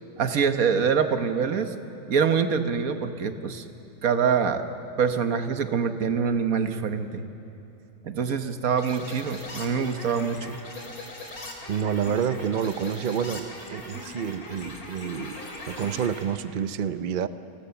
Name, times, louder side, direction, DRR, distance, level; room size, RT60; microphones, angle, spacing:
voice 1, 0.2-1.7 2.1-3.6 4.0-4.6 5.0-7.2 8.0-10.6, right 6 dB, 75° right, 8 dB, 1.6 m, -25 dB
sound 1, 8.8-16.2, left 2 dB, 80° left, 3.4 m, -40 dB
voice 2, 11.7-15.4 15.7-17.3, right 8 dB, 45° right, 12 dB, 0.7 m, -28 dB
29.0 x 20.5 x 7.0 m, 2.8 s
omnidirectional pair, 1.5 m